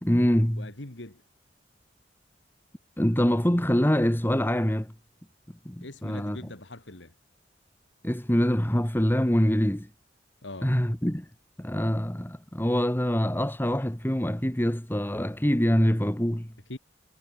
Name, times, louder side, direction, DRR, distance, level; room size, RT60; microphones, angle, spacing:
voice 1, 0.0-0.7 3.0-4.9 5.6-6.4 8.0-9.9 10.6-11.3 11.6-16.5, equal, 10° left, 1.7 m, -25 dB
voice 2, 0.6-1.2 5.8-7.1 10.4-10.7 16.7-16.8, left 2 dB, 75° left, 2.6 m, -41 dB
head